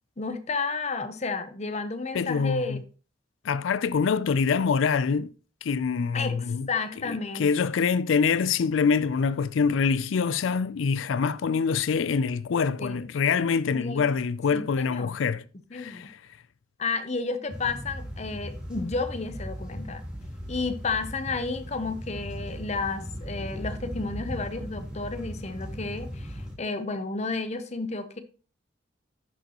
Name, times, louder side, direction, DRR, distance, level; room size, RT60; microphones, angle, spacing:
voice 1, 0.2-2.8 6.1-7.7 12.8-13.1 13.7-14.0 14.5-14.6 14.9-15.2 15.7-16.1 16.8-20.0 20.5-28.2, left 4 dB, 35° left, 0.8 m, -32 dB
voice 2, 2.1-2.8 3.4-5.3 5.6-6.7 7.0-15.4 15.7-16.2, left 5 dB, 80° left, 0.4 m, -25 dB
sound 1, 17.5-26.5, equal, 5° right, 2.7 m, -38 dB
10.5 x 6.3 x 2.9 m
head